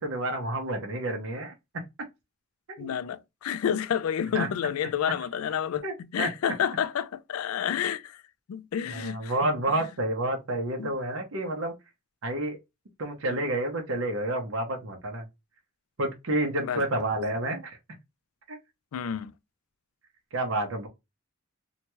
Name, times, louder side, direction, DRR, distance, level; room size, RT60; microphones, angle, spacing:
voice 1, 0.0-1.8 2.8-3.0 4.3-4.5 5.8-6.3 8.9-11.7 12.2-12.6 13.0-15.3 16.0-17.8 18.5-18.6 20.3-20.9, right 1 dB, 65° right, 0.7 m, -29 dB
voice 2, 2.8-8.2 8.5-9.8 10.8-10.9 13.3-13.4 16.6-16.8 18.9-19.3, left 8 dB, 80° left, 0.3 m, -30 dB
2.9 x 2.2 x 2.9 m
head